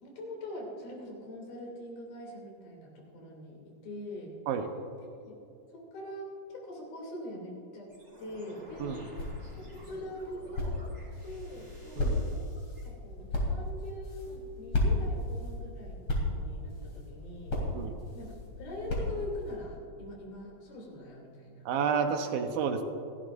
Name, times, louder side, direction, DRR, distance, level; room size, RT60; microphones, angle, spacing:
voice 1, 0.0-4.4 5.3-5.4 5.7-7.9 8.2-9.0 9.5-9.6 9.9-10.9 11.2-12.1 12.8-17.6 18.1-21.7, left 1 dB, 80° left, -1 dB, 4.8 m, -43 dB
sound 1, 7.9-12.9, right 1 dB, 20° right, 2.9 m, -52 dB
sound 2, 8.6-19.5, left 1 dB, 40° left, 3.4 m, -35 dB
voice 2, 21.7-22.8, right 6 dB, 80° right, 5 dB, 2.8 m, -30 dB
28.5 x 11.5 x 2.6 m, 2.6 s
omnidirectional pair, 4.2 m